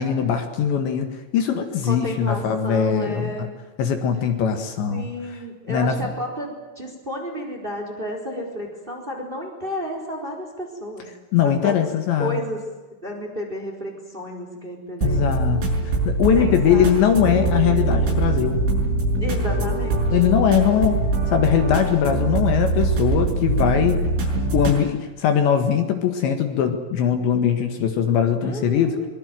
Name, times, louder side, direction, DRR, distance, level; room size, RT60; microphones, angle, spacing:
voice 1, 0.0-3.5 3.8-5.1 5.7-6.0 11.3-12.4 15.0-18.6 20.1-21.0 21.3-24.1 24.5-29.0, left 8 dB, 70° left, 6 dB, 3.8 m, -21 dB
voice 2, 1.9-3.5 4.9-11.1 11.6-11.9 12.2-12.6 13.0-15.3 16.3-16.9 19.1-20.2 28.4-29.1, equal, 10° right, 3 dB, 3.7 m, -32 dB
sound 1, 15.0-24.8, right 2 dB, 75° right, 8.6 m, -22 dB
23.5 x 22.5 x 7.7 m, 1.2 s
omnidirectional pair, 5.7 m